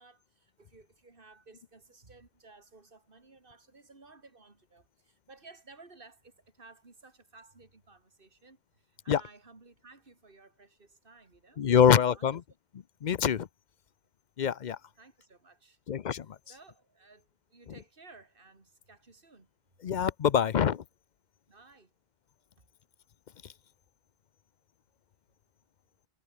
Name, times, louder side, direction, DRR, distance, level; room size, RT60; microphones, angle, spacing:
voice 1, 0.0-12.4 15.0-15.8 16.5-19.5 21.5-21.9, right 3 dB, 60° right, 3.0 m, -56 dB
voice 2, 11.6-12.4 13.0-13.5 14.4-14.8 15.9-16.4 19.8-20.8, left 8 dB, 50° left, 0.7 m, -25 dB
omnidirectional pair, 1.0 m